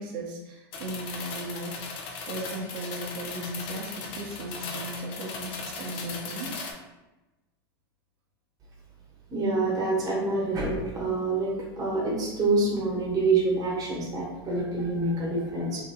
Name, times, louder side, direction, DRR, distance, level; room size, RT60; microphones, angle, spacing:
voice 1, 0.0-1.8 2.3-6.7, right 1 dB, 65° right, 0 dB, 0.7 m, -36 dB
sound 1, 0.7-6.7, left 4 dB, 50° left, 0.5 m, -38 dB
voice 2, 9.3-15.8, right 3 dB, 30° right, -4 dB, 0.9 m, -26 dB
2.8 x 2.7 x 2.2 m, 1.0 s
hypercardioid pair, 105°, 13 cm